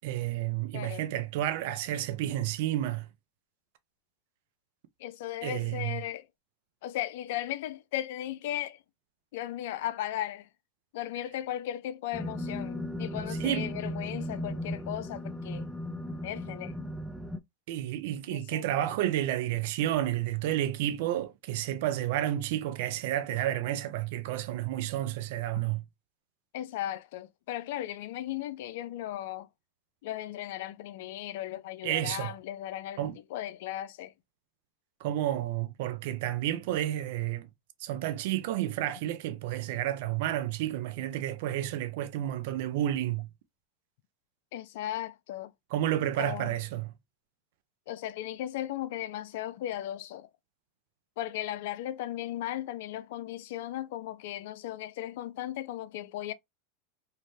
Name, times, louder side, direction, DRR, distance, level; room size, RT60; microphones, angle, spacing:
voice 1, 0.0-3.1 5.4-6.0 13.4-13.7 17.7-25.8 31.8-32.3 33.0-33.2 35.0-37.5 37.8-43.3 45.7-46.9, right 13 dB, 70° right, 0.4 m, -31 dB
voice 2, 0.7-1.0 5.0-6.3 6.8-8.8 9.3-10.5 10.9-15.7 16.2-16.7 18.3-18.7 25.6-25.7 26.5-29.5 30.0-34.1 44.5-45.5 46.2-46.6 47.9-50.3 51.2-56.3, left 13 dB, 70° left, 0.3 m, -36 dB
sound 1, 12.1-17.4, left 1 dB, ahead, 0.4 m, -36 dB
2.7 x 2.1 x 3.1 m
hypercardioid pair, 100°, 0 cm